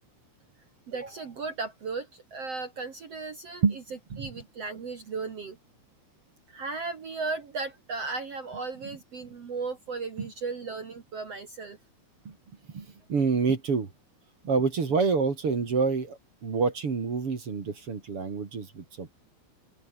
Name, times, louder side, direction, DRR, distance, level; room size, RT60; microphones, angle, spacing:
voice 1, 0.9-3.6 4.2-5.6 6.5-11.8, right 4 dB, 55° right, 1.7 m, -36 dB
voice 2, 12.7-13.9 14.4-19.2, right 5 dB, 35° right, 2.7 m, -27 dB
open air
omnidirectional pair, 6.0 m